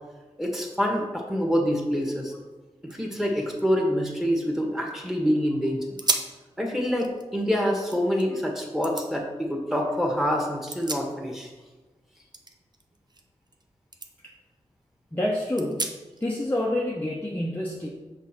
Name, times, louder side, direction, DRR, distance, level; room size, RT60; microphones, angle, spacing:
voice 1, 0.4-2.3 2.8-5.8 6.6-11.5, equal, ahead, 0 dB, 1.6 m, -26 dB
sound 1, 2.5-2.6 2.8-5.1 5.5-5.6 6.0-6.4 6.8-8.3 8.8-9.1 10.4-11.6 11.8-13.6 13.9-14.1 14.6-14.7 15.6-16.3, right 2 dB, 35° right, 0.7 m, -35 dB
voice 2, 15.1-15.9 16.2-17.9, left 1 dB, 15° left, -3 dB, 0.9 m, -27 dB
6.1 x 3.5 x 6.0 m, 1.2 s
cardioid pair, 55°, 12 cm